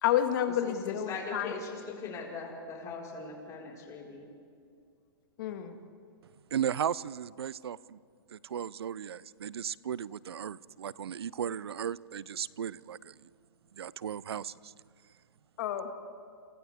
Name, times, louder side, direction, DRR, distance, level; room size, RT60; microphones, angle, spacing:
voice 1, 0.0-1.5 5.4-5.8 15.6-15.9, left 10 dB, 55° left, 2.0 m, -30 dB
voice 2, 0.6-4.3, left 4 dB, 25° left, 5.0 m, -40 dB
voice 3, 6.5-8.0 8.3-13.1 13.7-14.7, right 9 dB, 80° right, 0.5 m, -36 dB
29.0 x 28.5 x 3.6 m
hypercardioid pair, 125°, 13 cm